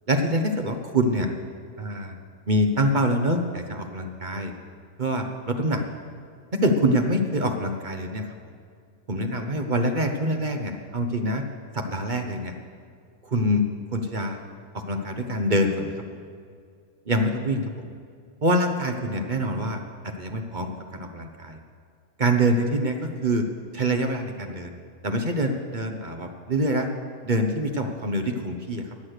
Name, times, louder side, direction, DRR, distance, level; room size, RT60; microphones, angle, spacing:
voice 1, 0.1-1.3 1.8-2.2 2.5-4.5 5.0-5.8 6.5-8.3 9.1-11.4 11.7-12.5 13.2-13.6 13.9-14.4 14.7-15.9 17.1-17.8 18.4-19.8 20.0-21.6 22.2-23.5 23.7-24.7 25.0-26.9 27.2-28.9, right 1 dB, 35° right, 4 dB, 1.0 m, -25 dB
16.0 x 9.7 x 6.6 m, 2.2 s
omnidirectional pair, 1.6 m